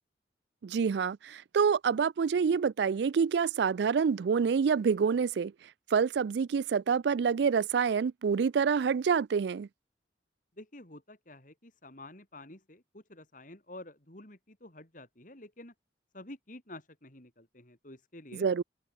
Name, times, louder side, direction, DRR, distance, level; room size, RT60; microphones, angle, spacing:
voice 1, 0.6-5.5 5.9-9.7 18.3-18.6, right 6 dB, 65° right, 0.3 m, -27 dB
voice 2, 10.6-15.7 16.1-18.5, left 1 dB, 45° left, 3.9 m, -49 dB
open air
head